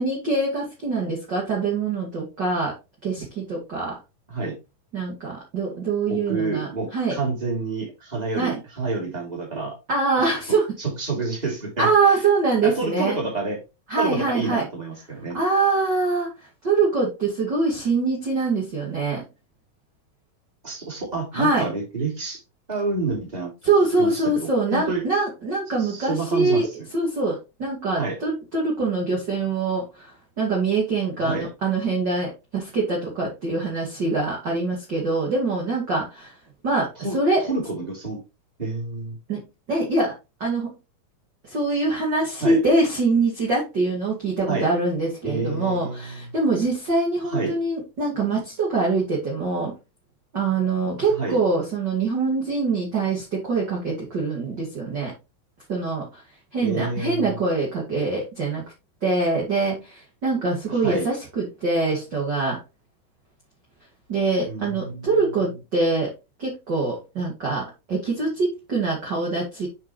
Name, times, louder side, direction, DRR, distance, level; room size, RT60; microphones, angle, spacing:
voice 1, 0.0-2.7 3.0-4.0 4.9-7.1 8.4-8.5 9.9-10.7 11.8-13.2 13.9-14.6 15.3-16.3 16.6-19.3 21.3-21.7 23.6-26.7 26.9-36.3 36.6-37.5 39.3-39.4 39.7-40.1 40.4-40.7 41.4-49.8 50.3-55.1 55.7-56.2 56.5-58.6 59.0-62.6 64.1-66.1 66.4-69.7, right 3 dB, 35° right, -4 dB, 2.5 m, -24 dB
voice 2, 6.1-9.8 10.1-10.3 10.8-11.9 12.6-13.6 14.0-15.4 20.6-22.4 22.7-23.5 24.0-25.0 25.8-26.7 28.0-28.2 31.2-31.5 37.0-37.2 37.5-38.2 38.6-39.2 42.4-42.6 44.5-44.7 45.2-46.3 47.2-47.5 51.1-51.4 56.6-57.4 60.7-61.1 64.5-65.5, right 3 dB, 10° right, -1 dB, 3.0 m, -28 dB
7.4 x 5.9 x 3.2 m, 0.26 s
omnidirectional pair, 4.4 m